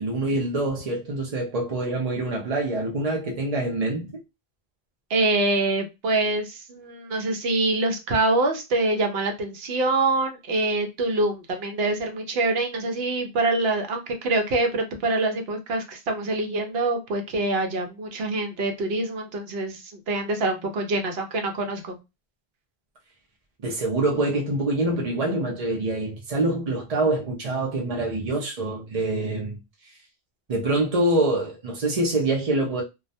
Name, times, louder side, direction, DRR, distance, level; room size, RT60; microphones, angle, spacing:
voice 1, 0.0-4.2 23.6-29.6 30.5-32.8, right 2 dB, 45° right, 0.6 m, -25 dB
voice 2, 5.1-22.0, right 2 dB, 75° right, 0.9 m, -25 dB
2.3 x 2.1 x 2.6 m
omnidirectional pair, 1.0 m